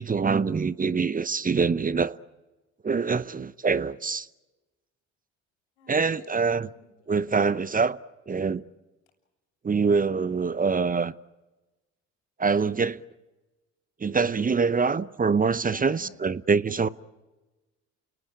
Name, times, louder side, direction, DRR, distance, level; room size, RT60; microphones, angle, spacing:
voice 1, 0.0-2.2 2.8-4.3 5.9-6.7 7.1-8.0 8.3-8.6 9.6-11.1 12.4-13.0 14.0-16.9, right 5 dB, 25° right, 0.8 m, -24 dB
voice 2, 5.8-6.3 6.6-7.1 15.7-16.1 16.7-16.8, left 4 dB, 85° left, 6.7 m, -50 dB
29.0 x 19.0 x 8.8 m
hypercardioid pair, 55°, 34 cm